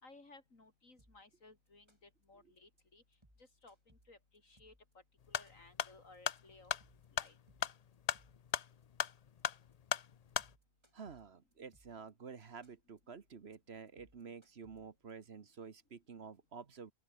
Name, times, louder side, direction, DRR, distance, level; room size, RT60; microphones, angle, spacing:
voice 1, 0.0-3.0 3.4-4.7 5.3-6.7 7.1-7.4, left 3 dB, 80° left, 4.6 m, -60 dB
sound 1, 1.0-1.4 1.7-2.2 2.6-2.8 3.1-4.9 5.2-5.8 6.1-6.4 6.7-8.5 8.8-9.4 9.7-10.0 10.3-12.1 12.4-13.0 13.3-13.6 13.9-15.1, right 1 dB, 20° right, 6.9 m, -69 dB
sound 2, 5.2-10.5, left 8 dB, 50° left, 0.4 m, -39 dB
voice 2, 10.9-16.9, right 5 dB, 55° right, 1.4 m, -50 dB
open air
omnidirectional pair, 1.4 m